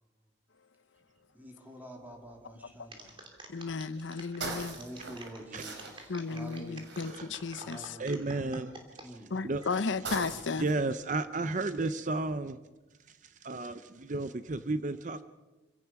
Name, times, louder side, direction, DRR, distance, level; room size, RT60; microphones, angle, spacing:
voice 1, 1.3-3.2 4.8-6.9 7.5-8.2 9.0-9.3 10.2-10.6, equal, 10° right, 2.9 m, -48 dB
sound 1, 2.1-2.6 3.1-3.2 3.4-8.5 9.2-10.7, right 3 dB, 75° right, 3.7 m, -43 dB
sound 2, 2.9-9.1 9.6-10.0, right 2 dB, 25° right, 2.9 m, -49 dB
voice 2, 3.5-4.8 6.1-8.0 9.3-10.7, left 4 dB, 85° left, 0.7 m, -34 dB
voice 3, 8.0-8.8 9.0-9.1 9.4-9.6 10.6-12.6 13.1-15.2, right 2 dB, 40° right, 0.7 m, -33 dB
27.0 x 16.5 x 6.0 m
head